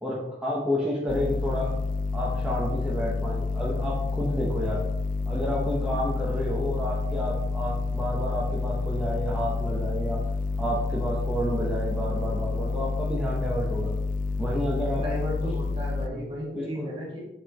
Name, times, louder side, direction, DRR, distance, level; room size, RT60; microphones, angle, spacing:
voice 1, 0.0-1.8 2.1-4.9 5.3-10.2 10.6-13.9 14.4-15.0 16.1-16.2 16.5-16.9, equal, 5° right, -7 dB, 0.9 m, -30 dB
sound 1, 1.1-16.1, left 3 dB, 45° left, 0.3 m, -29 dB
voice 2, 14.9-17.2, left 1 dB, 30° right, -5 dB, 2.2 m, -34 dB
6.6 x 5.1 x 3.0 m, 0.92 s
head